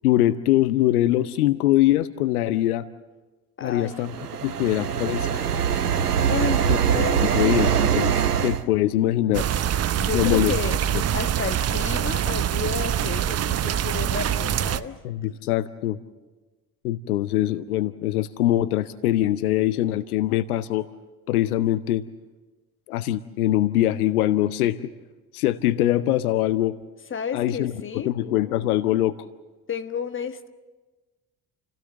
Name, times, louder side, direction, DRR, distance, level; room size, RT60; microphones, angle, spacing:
voice 1, 0.0-2.8 3.6-4.2 4.4-5.4 6.7-6.8 7.2-9.5 10.1-10.5 15.0-16.0 16.8-20.9 21.3-22.1 22.9-24.9 25.3-26.8 27.3-27.7 28.0-29.2, left 14 dB, 75° left, 15 dB, 0.7 m, -23 dB
voice 2, 3.6-4.0 6.3-7.4 10.0-10.8 11.1-15.0 27.1-28.1 29.7-30.5, left 6 dB, 25° left, 9 dB, 1.4 m, -31 dB
sound 1, 3.9-8.6, right 8 dB, 90° right, 0.7 m, -23 dB
sound 2, 9.3-14.8, right 10 dB, 35° right, 0.8 m, -24 dB
29.0 x 16.5 x 7.5 m, 1.3 s
figure-of-eight pair, 55°, 45 cm